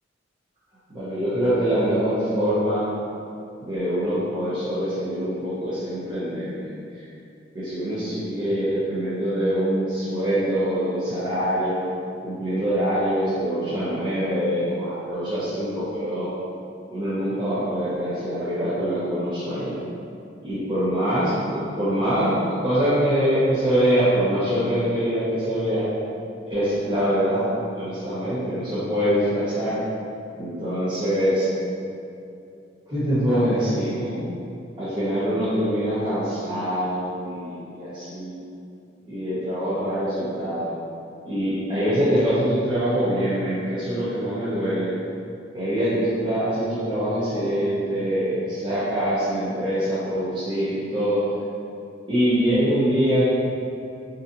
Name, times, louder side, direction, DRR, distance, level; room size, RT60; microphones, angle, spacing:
voice 1, 0.9-2.9 3.6-7.1 7.5-11.8 12.2-16.3 16.9-19.8 20.4-25.9 26.5-29.8 30.3-31.5 32.9-34.2 34.8-38.4 39.0-40.7 41.2-44.9 45.5-51.2 52.1-53.3, equal, 25° right, -14 dB, 0.8 m, -24 dB
3.8 x 2.7 x 2.6 m, 2.6 s
head